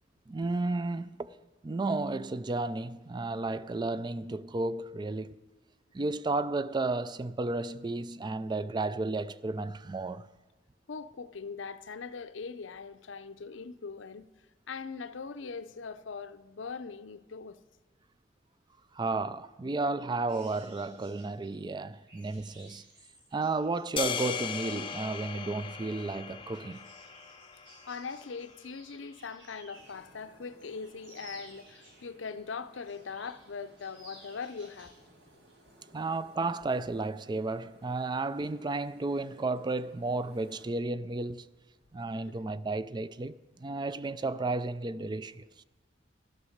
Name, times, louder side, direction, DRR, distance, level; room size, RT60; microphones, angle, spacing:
voice 1, 0.3-1.3 1.6-5.3 5.9-10.3 18.9-22.8 23.3-26.9 35.9-41.5 41.9-45.5, right 3 dB, 25° right, 0.4 m, -33 dB
voice 2, 10.9-14.3 14.7-17.6 27.9-34.9 42.2-42.4 44.4-44.5, left 5 dB, 80° left, 0.6 m, -41 dB
sound 1, 20.3-30.1 30.4-32.3 32.7-33.5 33.8-35.0 35.3-35.5, right 1 dB, 85° right, 6.0 m, -56 dB
sound 2, 24.0-28.3, left 7 dB, 30° left, 0.7 m, -38 dB
sound 3, 29.7-40.7, right 1 dB, 65° right, 2.0 m, -60 dB
13.0 x 12.0 x 6.5 m
head